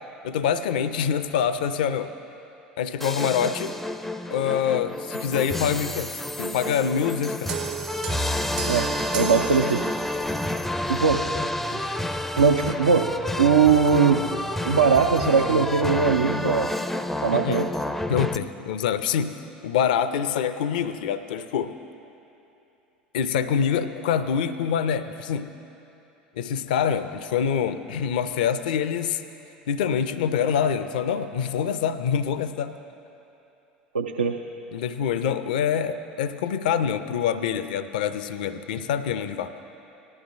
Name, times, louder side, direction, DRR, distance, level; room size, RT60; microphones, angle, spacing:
voice 1, 0.2-2.1 2.8-3.8 4.3-6.1 6.4-7.5 17.3-17.6 18.1-19.4 19.6-21.7 23.1-25.5 26.4-29.2 29.7-32.7 34.7-39.5, left 8 dB, 65° left, 13 dB, 0.4 m, -25 dB
sound 1, 3.0-18.4, left 1 dB, 5° left, 0.4 m, -29 dB
sound 2, 7.5-10.4, right 8 dB, 60° right, 0.9 m, -34 dB
voice 2, 8.7-9.9 10.9-11.3 12.4-14.2 14.6-16.7 17.2-17.7 33.9-34.4, right 6 dB, 80° right, 3 dB, 0.4 m, -20 dB
18.5 x 12.0 x 2.6 m, 2.9 s
figure-of-eight pair, 70°, 5 cm